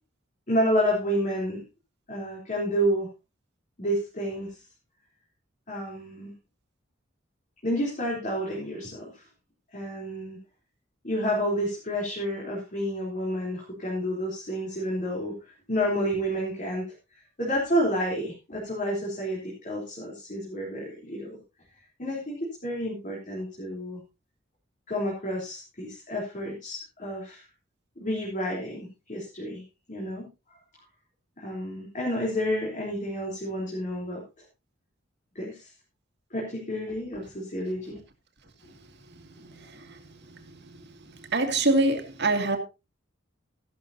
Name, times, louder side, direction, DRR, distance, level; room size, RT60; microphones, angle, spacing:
voice 1, 0.5-1.6 2.1-3.1 3.8-4.6 5.7-6.3 7.6-9.2 9.7-10.4 11.0-15.4 15.7-16.9 17.4-21.4 22.0-24.0 24.9-27.4 28.0-29.6 29.9-30.3 31.4-34.2 35.4-35.7 36.3-38.0, equal, 40° left, 3.6 m, -30 dB
voice 2, 41.3-42.6, right 2 dB, 60° right, 2.2 m, -23 dB
14.5 x 12.0 x 2.8 m
head